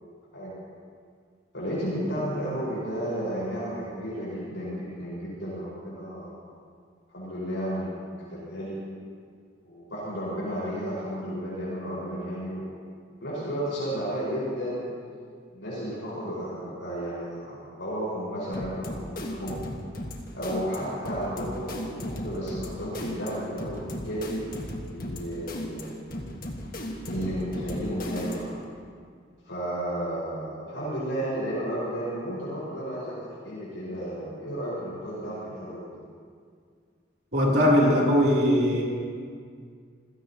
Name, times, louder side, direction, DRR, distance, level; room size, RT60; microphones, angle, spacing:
voice 1, 1.5-6.4 7.1-8.0 8.3-8.8 9.6-12.7 13.2-14.8 15.5-19.6 20.3-24.5 24.9-26.0 27.1-28.6 29.4-36.0, equal, 80° left, -9 dB, 5.2 m, -33 dB
sound 1, 18.5-28.6, left 1 dB, 50° left, 1.7 m, -36 dB
voice 2, 37.3-38.8, equal, 55° right, -4 dB, 3.4 m, -20 dB
27.5 x 16.5 x 3.0 m, 2.1 s
head